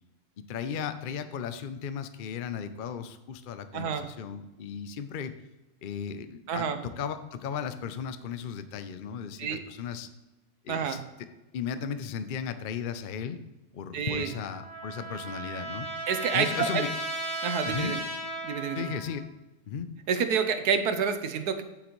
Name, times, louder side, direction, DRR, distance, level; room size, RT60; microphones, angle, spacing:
voice 1, 0.4-5.3 5.8-10.1 10.6-11.0 11.5-13.4 13.7-15.9 16.3-16.9 17.6-18.0 18.7-19.2 19.7-19.9, left 7 dB, 60° left, 11 dB, 0.5 m, -35 dB
voice 2, 3.7-4.1 6.5-6.8 9.4-9.6 10.7-11.0 13.9-14.3 16.1-16.8 17.4-18.0 18.4-18.9 20.1-21.6, right 6 dB, 80° right, 8 dB, 1.4 m, -28 dB
Trumpet, 14.1-19.3, right 2 dB, 25° left, 1.7 m, -36 dB
9.6 x 7.9 x 3.1 m, 1.0 s
omnidirectional pair, 1.7 m